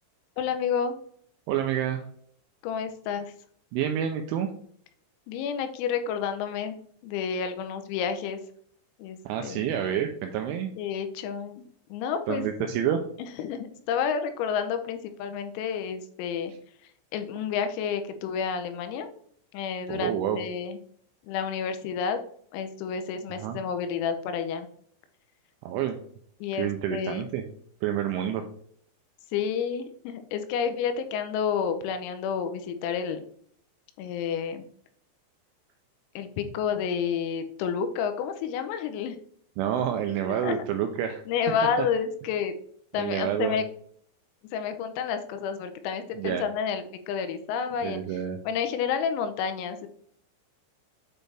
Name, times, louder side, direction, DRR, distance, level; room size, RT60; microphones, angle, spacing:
voice 1, 0.4-1.0 2.6-3.3 5.3-8.4 9.0-9.7 10.8-12.4 13.2-16.5 17.1-19.1 19.5-20.8 21.2-22.2 22.5-24.7 26.4-27.3 29.3-33.2 34.0-34.6 36.2-39.2 40.4-40.6 41.3-42.5 42.9-43.7 44.5-48.0 48.5-49.9, left 7 dB, 90° left, 8 dB, 3.5 m, -30 dB
voice 2, 1.5-2.0 3.7-4.5 9.3-10.7 12.3-13.0 19.9-20.4 23.4-23.6 25.6-25.9 26.6-27.4 27.8-28.4 39.6-41.2 41.8-41.9 43.0-43.6 46.2-46.4 47.8-48.4, right 10 dB, 85° right, 5 dB, 2.7 m, -28 dB
9.1 x 4.3 x 3.3 m, 0.62 s
omnidirectional pair, 5.9 m